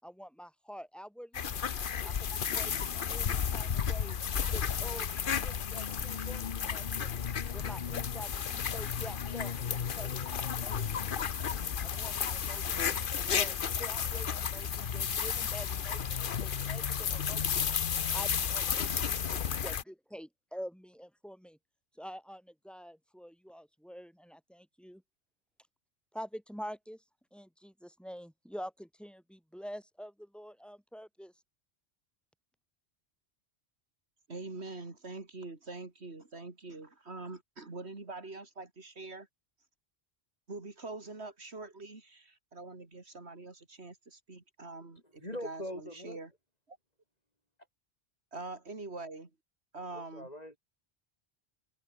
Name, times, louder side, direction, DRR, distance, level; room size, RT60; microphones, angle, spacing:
voice 1, 0.0-1.5 2.0-2.1 2.5-7.1 7.5-9.6 10.0-11.0 11.8-17.7 18.1-21.6 22.0-25.0 26.1-27.0 27.3-31.3, equal, ahead, 4.8 m, -47 dB
sound 1, 1.3-19.8, left 7 dB, 55° left, 1.0 m, -33 dB
voice 2, 34.3-39.3 40.5-46.3 46.7-46.8 48.3-49.3 49.7-50.3, right 3 dB, 90° right, 3.5 m, -44 dB
voice 3, 45.2-46.2 49.9-50.6, left 1 dB, 40° left, 8.2 m, -41 dB
omnidirectional pair, 1.1 m